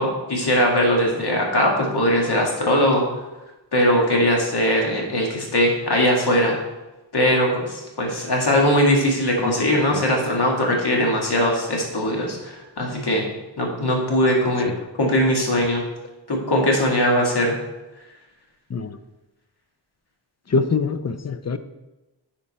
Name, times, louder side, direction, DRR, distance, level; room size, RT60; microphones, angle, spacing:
voice 1, 0.0-3.0 3.7-6.6 7.1-13.3 13.6-14.7 15.0-15.8 16.3-17.6, equal, 60° left, -1 dB, 2.1 m, -20 dB
voice 2, 20.5-21.6, left 4 dB, 35° left, 11 dB, 0.6 m, -24 dB
10.0 x 4.4 x 4.2 m, 1.0 s
wide cardioid pair, 65°, 44 cm